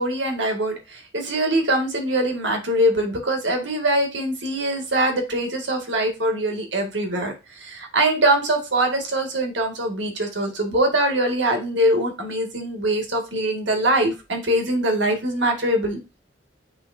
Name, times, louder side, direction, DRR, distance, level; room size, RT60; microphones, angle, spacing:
voice 1, 0.0-16.0, right 1 dB, 70° right, 3 dB, 2.1 m, -23 dB
9.9 x 3.7 x 2.7 m, 0.27 s
head